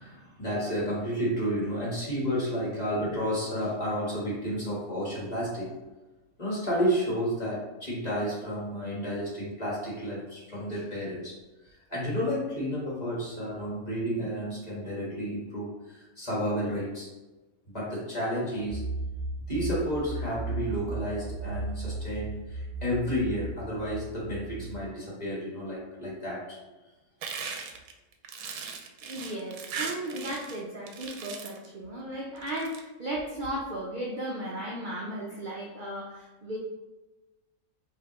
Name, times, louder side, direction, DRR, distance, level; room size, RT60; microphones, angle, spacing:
voice 1, 0.0-5.7 6.4-17.1 17.7-18.9 19.5-26.6, equal, 30° left, -6 dB, 1.4 m, -31 dB
sound 1, 18.7-24.7, right 2 dB, 35° right, 0.9 m, -36 dB
sound 2, 27.2-30.6 30.9-31.7 32.4-32.8, right 6 dB, 80° right, 1.0 m, -38 dB
voice 2, 29.0-36.6, right 1 dB, 55° right, -3 dB, 0.6 m, -35 dB
5.2 x 2.8 x 2.9 m, 1.1 s
omnidirectional pair, 1.5 m